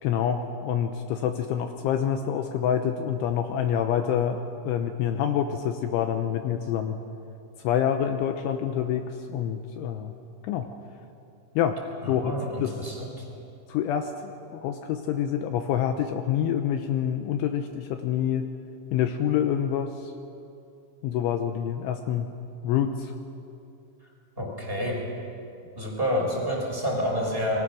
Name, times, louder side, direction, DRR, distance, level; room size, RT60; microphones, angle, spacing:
voice 1, 0.0-7.0 7.6-10.1 10.4-10.7 11.6-11.8 12.1-12.3 12.6-12.8 13.7-18.5 18.9-20.1 21.0-22.3 22.6-23.1, left 9 dB, 80° left, 6 dB, 3.1 m, -27 dB
voice 2, 12.0-13.3 24.4-25.0 25.8-27.6, equal, 10° right, -1 dB, 4.2 m, -28 dB
28.5 x 22.0 x 6.3 m, 2.6 s
omnidirectional pair, 5.9 m